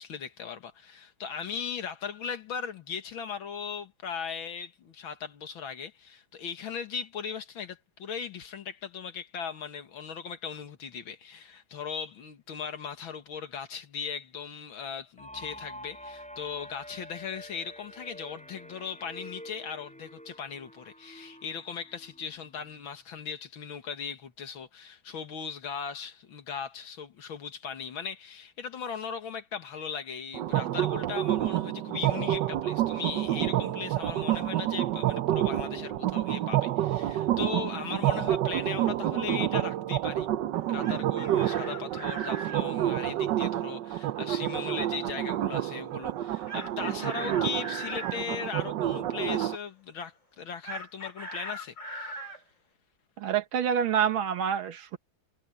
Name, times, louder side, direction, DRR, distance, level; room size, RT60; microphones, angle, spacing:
voice 1, 0.0-40.3 40.7-52.4, left 7 dB, 80° left, 2.5 m, -38 dB
sound 1, 15.2-22.8, equal, 5° left, 7.6 m, -47 dB
sound 2, 30.3-49.6, right 13 dB, 70° right, 1.3 m, -29 dB
Chicken rooster, 40.6-42.6 46.5-48.2 50.6-52.4, right 1 dB, 40° left, 7.4 m, -39 dB
voice 2, 53.2-55.0, right 8 dB, 85° right, 2.1 m, -27 dB
omnidirectional pair, 2.1 m